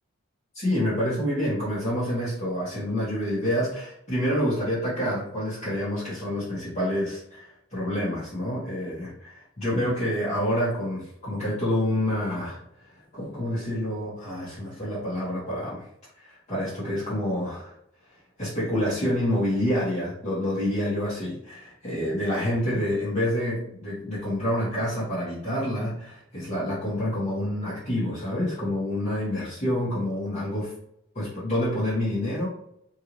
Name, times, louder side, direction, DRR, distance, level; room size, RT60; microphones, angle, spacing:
voice 1, 0.5-12.6 13.1-15.9 16.1-17.7 18.4-30.7 31.1-32.5, left 1 dB, 35° left, -11 dB, 1.2 m, -28 dB
3.8 x 2.7 x 3.0 m, 0.77 s
head